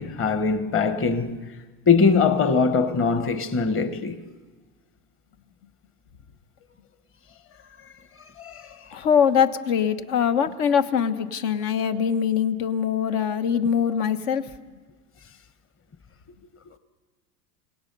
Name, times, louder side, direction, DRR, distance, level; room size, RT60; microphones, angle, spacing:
voice 1, 0.0-4.3 8.4-8.8, left 5 dB, 25° left, 1.3 m, -22 dB
voice 2, 8.9-14.5, left 7 dB, 65° left, 1.3 m, -23 dB
29.0 x 17.5 x 5.4 m
supercardioid pair, 120°, 47 cm